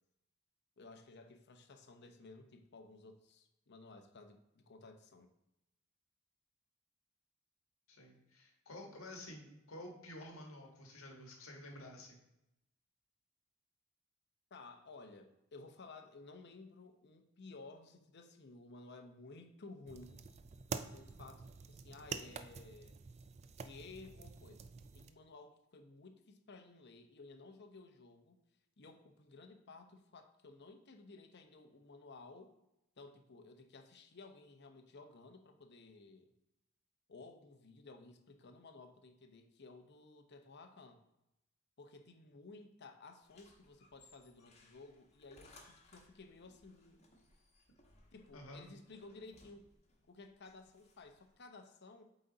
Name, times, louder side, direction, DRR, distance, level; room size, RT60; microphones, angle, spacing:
voice 1, 0.8-5.3 14.5-20.3 20.7-23.0 23.6-24.6 24.9-28.4 28.8-32.5 33.0-36.3 37.1-41.0 41.8-47.0 48.1-49.7 50.1-52.0, left 3 dB, 55° left, 5 dB, 0.7 m, -55 dB
voice 2, 7.9-12.2 48.3-48.6, left 1 dB, 80° left, 1 dB, 1.3 m, -51 dB
sound 1, 19.9-25.1, right 5 dB, 30° right, 0.3 m, -47 dB
sound 2, 43.2-51.3, left 2 dB, 35° left, 1.2 m, -65 dB
8.0 x 4.0 x 3.9 m, 0.89 s
head